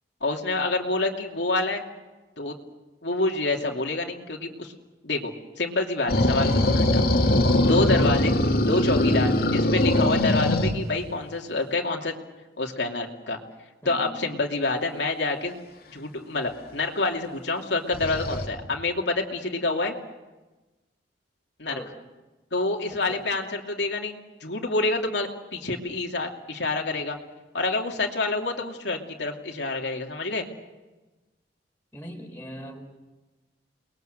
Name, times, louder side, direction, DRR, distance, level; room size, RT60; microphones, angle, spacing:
voice 1, 0.2-1.8 2.4-2.5 3.0-4.7 5.0-7.0 7.6-8.4 8.6-12.1 12.6-13.4 13.8-15.6 15.9-19.9 21.6-21.8 22.5-27.2 27.5-30.5, left 2 dB, 80° left, 1 dB, 2.8 m, -27 dB
sound 1, 6.1-10.7 17.9-18.5, left 1 dB, 60° left, 2.7 m, -21 dB
voice 2, 7.7-8.0 9.1-9.4 13.8-14.2 21.7-21.9 23.1-23.2 31.9-32.8, equal, 10° left, 1 dB, 4.5 m, -38 dB
30.0 x 21.5 x 8.0 m, 1.1 s
head